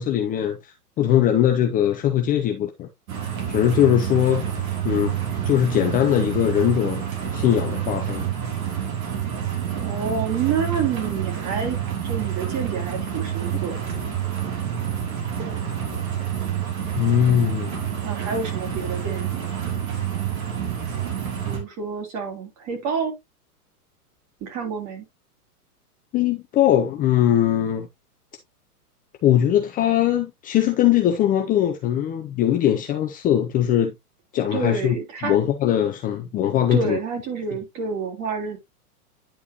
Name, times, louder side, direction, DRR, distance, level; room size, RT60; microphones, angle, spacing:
voice 1, 0.0-2.9 3.5-4.5 4.8-5.1 5.4-7.0 7.3-8.3 17.0-17.8 26.1-27.9 29.2-33.9 34.3-35.0 35.2-37.0, left 11 dB, 20° left, 0.6 m, -21 dB
sound 1, 3.1-21.6, right 9 dB, 60° right, 3.1 m, -28 dB
voice 2, 9.8-11.8 12.0-13.8 18.0-19.6 21.5-23.1 24.4-25.1 34.5-35.4 36.7-38.6, right 5 dB, 35° right, 3.5 m, -28 dB
10.0 x 4.8 x 2.9 m
hypercardioid pair, 125°, 46 cm